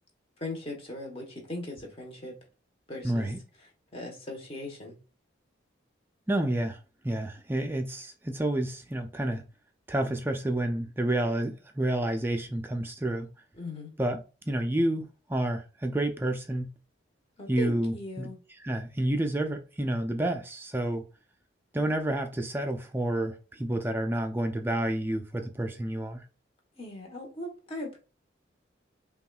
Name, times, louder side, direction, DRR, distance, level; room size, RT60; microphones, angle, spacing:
voice 1, 0.4-2.3 2.9-3.3 3.9-4.9 13.6-13.9 17.4-18.4 26.8-28.0, left 1 dB, 30° left, 1.0 m, -38 dB
voice 2, 3.0-3.4 6.3-9.4 9.9-13.3 14.0-16.7 17.5-18.3 18.6-21.1 21.7-26.2, right 1 dB, 10° right, 0.3 m, -29 dB
5.7 x 2.3 x 2.3 m
head